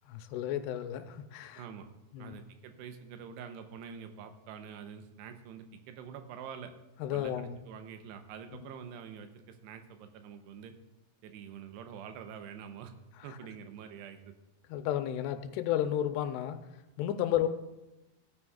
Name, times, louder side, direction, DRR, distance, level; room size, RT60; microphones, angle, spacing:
voice 1, 0.1-1.6 2.1-2.4 7.0-7.6 8.5-8.6 14.7-16.7 17.0-17.5, left 11 dB, 80° left, 8 dB, 2.6 m, -32 dB
voice 2, 1.6-1.9 2.2-6.7 7.1-10.7 11.2-12.9 13.2-14.2, right 7 dB, 90° right, 7 dB, 2.9 m, -46 dB
17.0 x 9.7 x 2.4 m, 0.99 s
omnidirectional pair, 4.8 m